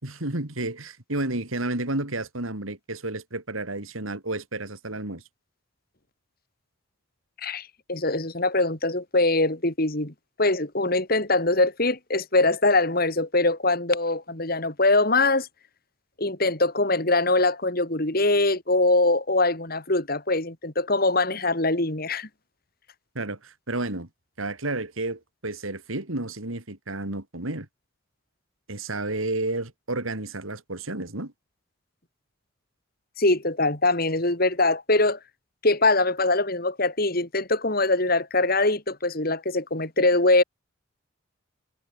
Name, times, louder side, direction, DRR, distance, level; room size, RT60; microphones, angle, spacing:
voice 1, 0.0-5.2 23.2-24.1 24.4-27.7 28.7-31.3, right 2 dB, 80° right, 3.6 m, -31 dB
voice 2, 7.4-10.1 10.4-15.5 16.2-22.3 33.2-35.2 35.6-40.4, left 2 dB, 45° left, 2.9 m, -23 dB
head